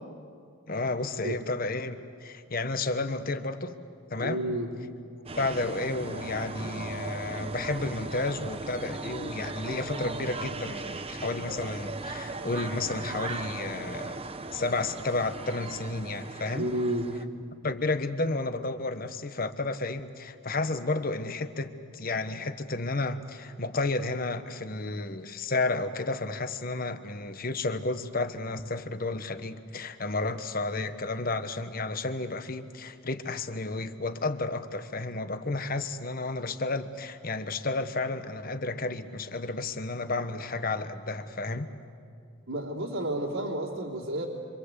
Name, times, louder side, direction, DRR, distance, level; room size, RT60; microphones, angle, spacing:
voice 1, 0.7-3.8 4.1-4.4 5.4-14.2 14.5-16.7 17.6-41.7, left 2 dB, 45° left, 10 dB, 1.2 m, -32 dB
voice 2, 4.2-4.7 16.5-17.1 42.5-44.3, right 1 dB, 85° right, -5 dB, 3.4 m, -31 dB
sound 1, 5.3-17.2, right 3 dB, 30° right, 1.0 m, -38 dB
26.5 x 26.0 x 8.3 m, 2.2 s
head